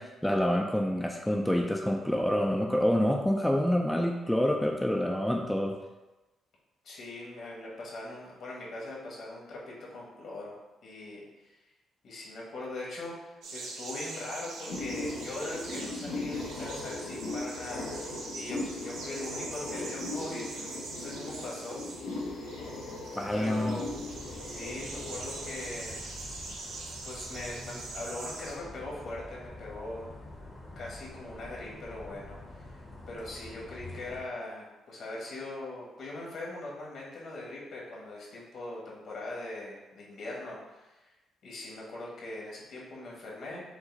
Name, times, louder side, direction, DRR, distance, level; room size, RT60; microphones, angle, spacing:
voice 1, 0.0-5.8 23.2-23.8, equal, 5° left, 1 dB, 0.4 m, -27 dB
voice 2, 6.8-10.6 10.8-11.6 12.0-17.9 18.3-21.8 22.2-22.3 23.3-23.9 24.4-26.0 27.0-30.1 30.7-32.7 33.1-41.1 41.4-43.6, left 2 dB, 65° left, -4 dB, 1.4 m, -41 dB
sound 1, 13.4-28.6, right 3 dB, 90° right, 0.7 m, -43 dB
sound 2, 14.7-26.0, left 2 dB, 90° left, 0.7 m, -38 dB
sound 3, 23.8-34.2, left 2 dB, 30° left, 0.8 m, -47 dB
5.2 x 2.0 x 3.9 m, 1.1 s
cardioid pair, 90°, 0 cm